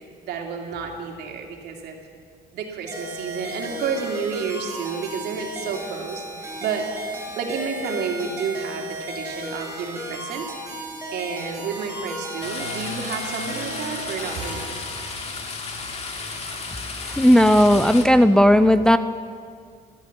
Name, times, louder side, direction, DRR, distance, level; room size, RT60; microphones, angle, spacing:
voice 1, 0.2-2.0 2.5-6.9 7.4-10.5 11.1-14.8, right 6 dB, 75° right, 2 dB, 2.5 m, -30 dB
sound 1, 2.9-14.6, right 1 dB, 15° right, 4.2 m, -35 dB
sound 2, 12.4-18.0, left 4 dB, 40° left, 2.0 m, -33 dB
voice 2, 17.2-19.0, equal, 5° left, 10 dB, 0.4 m, -15 dB
15.5 x 12.5 x 7.2 m, 2.1 s
cardioid pair, 110°, 17 cm